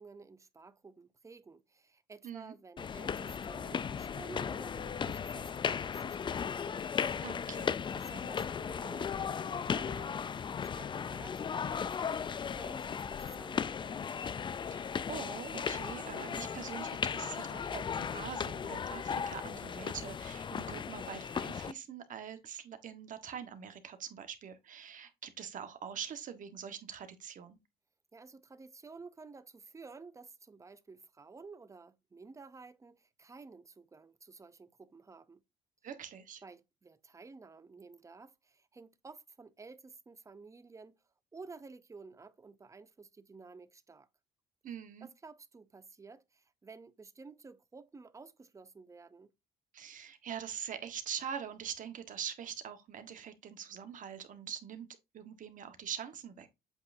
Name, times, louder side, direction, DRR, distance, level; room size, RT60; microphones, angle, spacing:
voice 1, 0.0-6.8 7.9-14.1 28.1-35.4 36.4-41.0 41.3-44.1 45.0-49.3, right 4 dB, 20° right, 0.7 m, -52 dB
sound 1, 2.8-21.7, left 7 dB, 30° left, 0.4 m, -36 dB
voice 2, 7.2-7.7 14.7-27.6 35.8-36.4 44.6-45.1 49.7-54.9 55.1-56.5, right 8 dB, 50° right, 1.5 m, -43 dB
8.0 x 5.7 x 2.7 m
cardioid pair, 110°, 17 cm